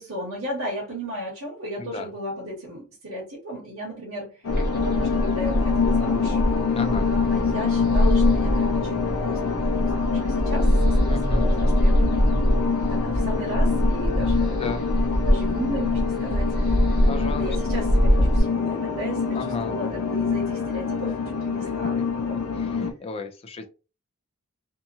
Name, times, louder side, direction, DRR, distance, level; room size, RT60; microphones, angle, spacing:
voice 1, 0.0-6.4 7.0-12.6 12.9-14.6 15.2-16.9 17.2-22.4, equal, 65° right, 1.1 m, -35 dB
voice 2, 1.8-2.1 6.7-7.1 11.1-11.5 14.5-14.9 17.1-17.8 19.3-19.7 22.6-23.7, left 3 dB, 25° left, 0.4 m, -34 dB
sound 1, 4.4-22.9, left 5 dB, 85° left, 0.6 m, -26 dB
sound 2, 4.5-18.4, equal, 45° right, 0.8 m, -23 dB
2.7 x 2.3 x 2.7 m
head